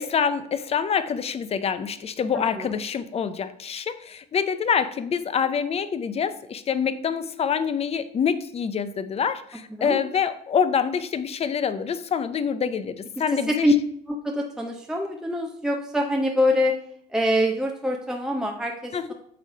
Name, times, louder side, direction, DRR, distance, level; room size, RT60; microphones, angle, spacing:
voice 1, 0.0-13.7 18.9-19.1, left 7 dB, 35° left, 13 dB, 0.6 m, -26 dB
voice 2, 9.7-10.0 13.5-13.7 14.1-16.7 17.1-19.1, left 1 dB, 5° right, 2 dB, 0.7 m, -24 dB
7.9 x 3.2 x 5.5 m, 0.65 s
cardioid pair, 110°, 17 cm